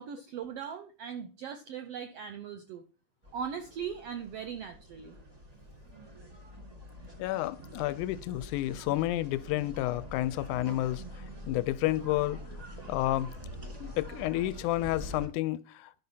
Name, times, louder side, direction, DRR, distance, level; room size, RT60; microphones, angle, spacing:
voice 1, 0.0-2.8 3.3-5.2, right 7 dB, 75° right, 1.4 m, -39 dB
sound 1, 3.2-15.3, equal, 25° right, 0.8 m, -45 dB
voice 2, 7.2-11.0 11.5-12.4 12.9-13.3 13.8-16.0, left 16 dB, 80° left, 2.0 m, -30 dB
10.5 x 5.7 x 5.6 m
omnidirectional pair, 3.6 m